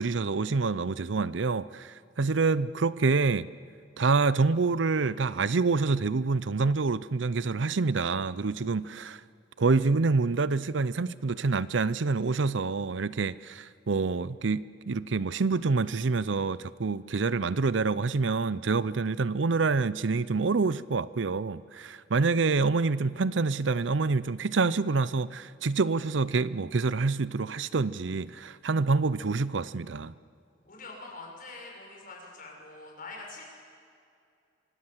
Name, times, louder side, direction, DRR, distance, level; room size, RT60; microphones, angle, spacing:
voice 1, 0.0-3.5 4.0-9.2 9.6-30.1, right 4 dB, 70° right, 0.6 m, -27 dB
voice 2, 30.6-33.4, left 3 dB, 50° left, 6.9 m, -44 dB
25.5 x 24.5 x 7.4 m
head